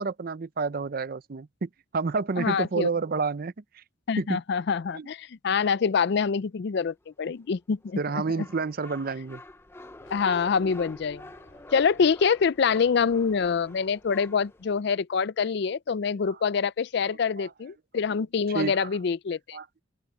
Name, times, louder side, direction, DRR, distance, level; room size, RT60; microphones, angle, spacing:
voice 1, 0.0-3.8 4.2-4.4 4.9-5.1 8.0-9.4 16.1-16.4 17.4-17.5 18.5-18.9 19.5-19.7, right 4 dB, 50° right, 0.5 m, -30 dB
voice 2, 2.4-2.9 4.1-8.0 10.1-11.2 11.7-19.6, left 6 dB, 60° left, 0.4 m, -25 dB
sound 1, 7.4-14.8, left 1 dB, 10° left, 0.6 m, -47 dB
sound 2, 10.0-14.9, left 2 dB, 85° left, 4.9 m, -59 dB
open air
head